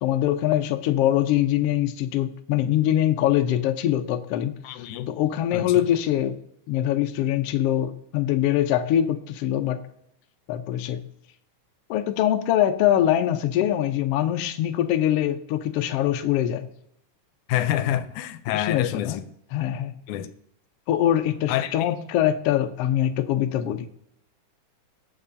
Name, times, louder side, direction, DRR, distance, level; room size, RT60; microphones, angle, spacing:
voice 1, 0.0-4.6 5.1-6.4 6.7-9.9 10.5-11.1 11.9-16.7 18.5-19.2 19.5-19.9 20.9-23.9, left 11 dB, 75° left, 1.5 m, -23 dB
voice 2, 4.6-5.1 5.5-5.7 17.5-19.2 20.1-20.3 21.5-21.9, left 12 dB, 90° left, 2.1 m, -27 dB
19.5 x 7.2 x 2.7 m
omnidirectional pair, 3.4 m